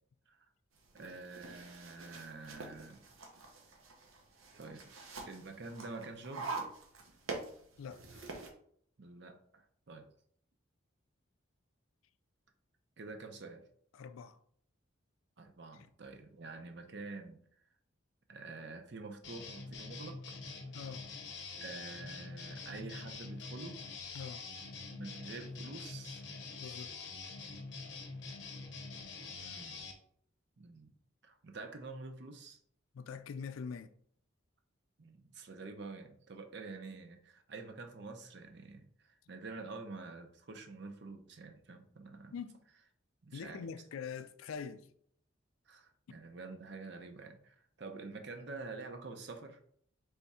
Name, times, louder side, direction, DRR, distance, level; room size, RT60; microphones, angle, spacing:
sound 1, 0.8-8.5, right 3 dB, 90° right, 0.8 m, -46 dB
voice 1, 0.9-3.0 4.5-4.9 5.3-6.6 9.0-10.1 13.0-13.6 15.4-17.4 18.3-20.2 21.6-23.8 24.9-26.2 29.3-29.8 30.6-30.9 31.2-32.6 35.0-42.3 43.2-43.6 45.7-49.8, right 3 dB, 55° right, 0.6 m, -47 dB
voice 2, 7.8-8.2 13.9-14.4 15.7-15.9 20.7-21.1 24.1-24.4 26.6-26.9 32.9-33.9 42.3-42.6 43.3-44.9, left 6 dB, 90° left, 0.4 m, -44 dB
sound 2, 19.2-29.9, left 4 dB, 60° left, 0.7 m, -45 dB
3.5 x 3.4 x 4.2 m
head